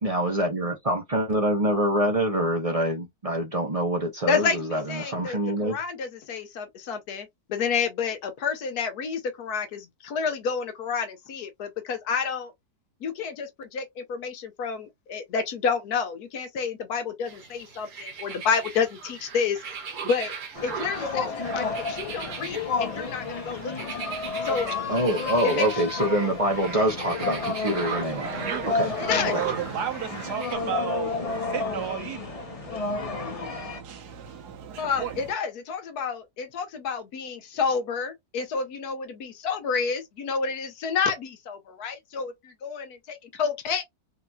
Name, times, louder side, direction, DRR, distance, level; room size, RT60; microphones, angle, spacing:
voice 1, 0.0-5.8 24.9-28.3 28.7-28.9 29.2-29.4, right 1 dB, 35° right, 0.6 m, -25 dB
voice 2, 4.3-12.5 13.0-19.6 20.0-20.3 20.6-24.1 24.4-24.7 25.4-25.7 29.0-29.4 34.8-43.8, left 5 dB, 75° left, 1.4 m, -29 dB
sound 1, 17.2-30.5, right 6 dB, 60° right, 1.0 m, -39 dB
sound 2, 20.6-33.8, left 4 dB, 45° left, 0.4 m, -31 dB
voice 3, 28.0-35.3, right 9 dB, 80° right, 1.5 m, -34 dB
3.8 x 2.8 x 2.3 m
omnidirectional pair, 1.7 m